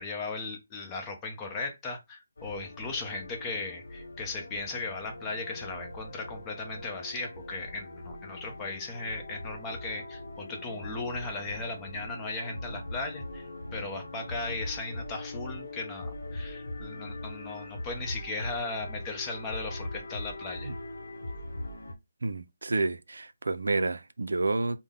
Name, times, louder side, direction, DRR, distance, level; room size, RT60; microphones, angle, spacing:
voice 1, 0.0-13.4 13.7-20.7, left 3 dB, 15° left, 0.6 m, -37 dB
sound 1, 2.4-21.9, left 1 dB, 80° left, 0.8 m, -41 dB
voice 2, 22.2-24.8, right 3 dB, 80° right, 0.4 m, -29 dB
3.7 x 2.1 x 3.6 m
hypercardioid pair, 165°, 0 cm